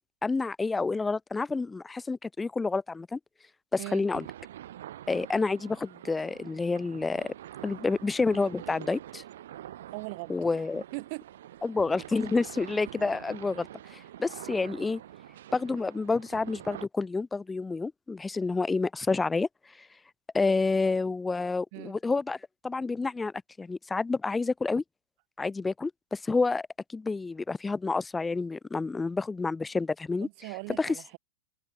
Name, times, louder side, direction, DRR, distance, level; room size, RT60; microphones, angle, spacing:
voice 1, 0.0-3.2 3.7-4.2 5.1-7.3 7.6-9.2 10.3-10.8 11.6-15.0 15.5-19.5 20.3-22.4 22.6-24.8 25.4-30.3 30.8-31.0, left 3 dB, 10° left, 0.6 m, -29 dB
sound 1, 4.1-16.9, right 12 dB, 70° right, 2.0 m, -45 dB
voice 2, 9.9-10.3 10.7-11.3 21.7-22.0 30.2-31.2, right 30 dB, 40° right, 2.1 m, -39 dB
open air
supercardioid pair, 160°, 0 cm